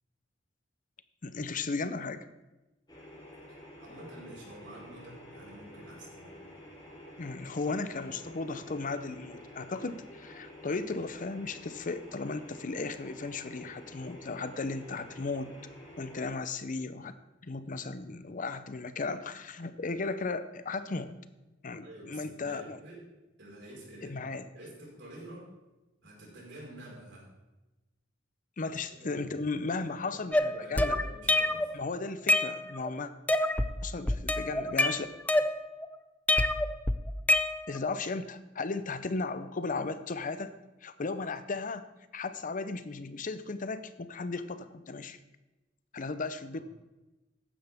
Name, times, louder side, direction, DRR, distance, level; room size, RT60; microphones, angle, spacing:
voice 1, 1.2-2.3 7.2-15.5 16.0-17.1 17.4-21.1 21.6-22.8 24.0-24.5 28.6-31.0 31.7-33.1 33.8-35.1 37.7-45.2 45.9-46.6, left 3 dB, 45° left, 12 dB, 0.7 m, -35 dB
sound 1, 2.9-16.2, left 1 dB, 25° left, 3.6 m, -50 dB
voice 2, 3.8-6.6 7.6-8.4 21.8-23.0 23.4-24.2 24.5-25.5 26.0-27.3 28.9-29.4 29.7-31.7 46.5-46.6, right 1 dB, 65° right, -3 dB, 4.9 m, -49 dB
sound 2, 30.3-31.7 32.1-32.9 33.3-33.7 34.1-35.9 36.3-37.9, left 2 dB, 10° left, 0.4 m, -27 dB
14.5 x 10.5 x 3.5 m, 1.1 s
head